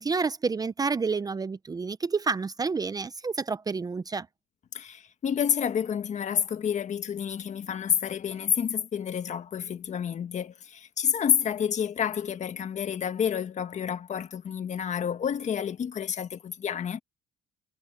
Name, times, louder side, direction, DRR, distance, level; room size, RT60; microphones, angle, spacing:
voice 1, 0.0-4.3, right 4 dB, 20° right, 0.7 m, -29 dB
voice 2, 4.7-17.0, left 8 dB, 45° left, 1.6 m, -29 dB
cardioid pair, 110°, 17 cm